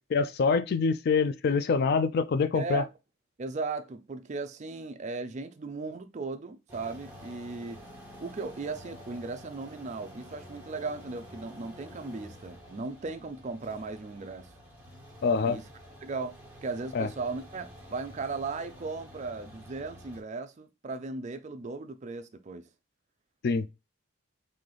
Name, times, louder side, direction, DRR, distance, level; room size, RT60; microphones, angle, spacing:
voice 1, 0.1-2.8 15.2-15.6 16.9-17.1 23.4-23.7, left 5 dB, 50° left, 0.3 m, -25 dB
voice 2, 2.5-2.9 3.4-7.8 8.2-14.5 15.4-15.6 16.0-22.6, right 3 dB, 35° right, 0.4 m, -37 dB
sound 1, 6.7-20.2, equal, 10° right, 1.3 m, -49 dB
3.2 x 2.7 x 3.8 m
head